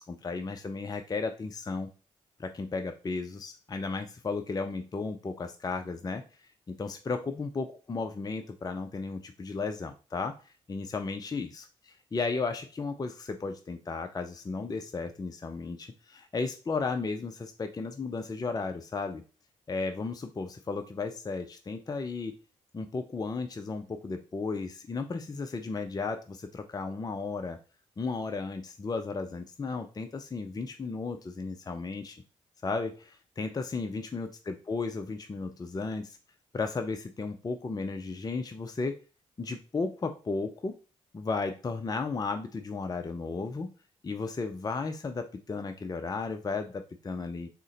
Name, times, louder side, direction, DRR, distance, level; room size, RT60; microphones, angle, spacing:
voice 1, 0.1-1.9 2.4-6.2 6.7-10.4 10.7-19.2 19.7-22.3 22.7-27.6 28.0-32.2 32.6-36.2 36.5-39.0 39.4-40.8 41.1-43.7 44.0-47.5, left 4 dB, 25° left, 6 dB, 0.5 m, -34 dB
3.7 x 2.1 x 4.0 m, 0.34 s
hypercardioid pair, 40°, 15 cm